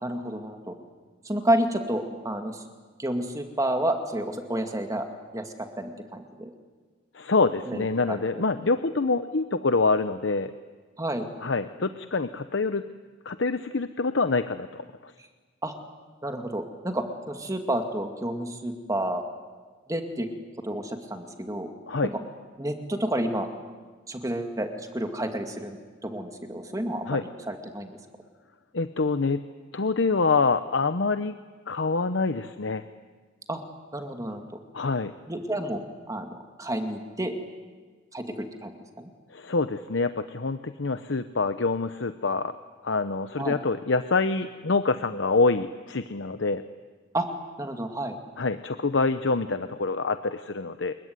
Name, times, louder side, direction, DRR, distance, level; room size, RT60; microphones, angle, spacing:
voice 1, 0.0-0.7 1.2-2.6 3.0-5.1 5.3-6.5 7.7-8.2 11.0-11.3 15.6-15.7 16.2-19.2 19.9-20.3 20.6-21.7 22.6-23.5 24.1-25.8 26.0-27.9 33.5-33.6 33.9-34.4 35.3-35.8 36.1-36.3 36.6-37.3 38.1-39.1 43.4-43.6 47.1-47.3 47.6-48.2, right 1 dB, 20° right, 5 dB, 2.2 m, -30 dB
voice 2, 7.1-10.5 11.4-12.8 13.2-15.1 21.9-22.1 27.1-27.2 28.7-29.4 29.7-31.3 31.7-32.8 34.7-35.1 39.3-42.5 42.8-46.6 48.4-50.9, left 3 dB, 70° left, 10 dB, 0.9 m, -26 dB
27.5 x 22.5 x 9.5 m, 1.5 s
head